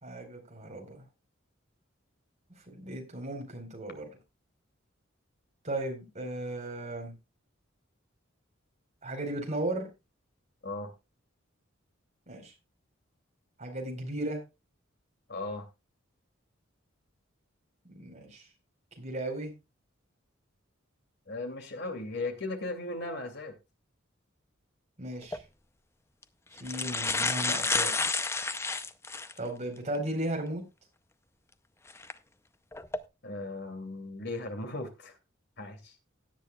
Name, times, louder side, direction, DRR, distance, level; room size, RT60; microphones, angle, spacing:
voice 1, 0.0-1.0 2.7-4.1 5.6-7.2 9.0-9.9 12.3-12.5 13.6-14.4 17.8-18.4 19.0-19.5 25.0-25.4 26.6-27.9 29.4-30.6, right 1 dB, 35° right, 2 dB, 4.2 m, -36 dB
voice 2, 15.3-15.7 21.3-23.5 33.2-35.1 35.6-35.9, left 2 dB, 55° left, 6 dB, 2.7 m, -37 dB
sound 1, 25.2-25.4 26.2-26.3 26.6-29.4 29.9-30.0 31.9-32.1 32.7-33.0, left 3 dB, 15° left, 0.5 m, -30 dB
16.5 x 10.5 x 2.3 m, 0.25 s
head